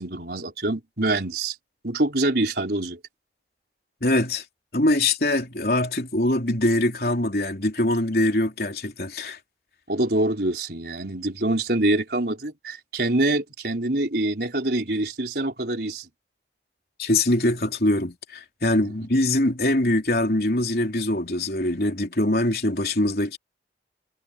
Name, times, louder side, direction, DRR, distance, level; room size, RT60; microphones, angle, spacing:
voice 1, 0.0-1.5 1.8-3.0 9.9-16.1 18.8-18.9, right 2 dB, 65° right, 4.3 m, -25 dB
voice 2, 4.0-4.4 4.7-9.4 17.0-23.4, left 1 dB, 55° left, 3.8 m, -23 dB
head